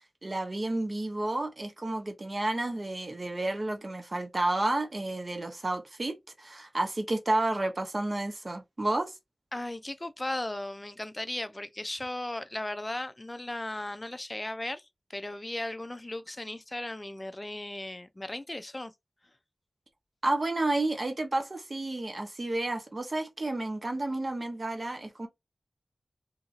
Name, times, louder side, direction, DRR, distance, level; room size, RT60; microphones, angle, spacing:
voice 1, 0.2-9.1 20.2-25.3, right 2 dB, 45° right, 0.9 m, -31 dB
voice 2, 9.5-18.9, left 1 dB, 25° left, 0.4 m, -36 dB
2.8 x 2.6 x 2.5 m
wide cardioid pair, 80°, 0 cm